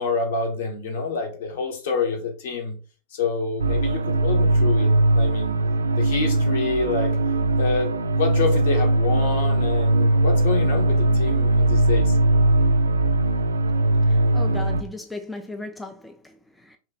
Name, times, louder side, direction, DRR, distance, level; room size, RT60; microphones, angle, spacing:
voice 1, 0.0-2.7 3.1-5.6 6.0-7.2 7.6-12.2, left 4 dB, 55° left, 1.1 m, -27 dB
sound 1, 3.6-14.8, right 2 dB, 75° right, 0.3 m, -20 dB
voice 2, 14.0-16.8, left 2 dB, 5° left, 0.4 m, -37 dB
3.1 x 3.0 x 3.5 m
figure-of-eight pair, 90°, 0 cm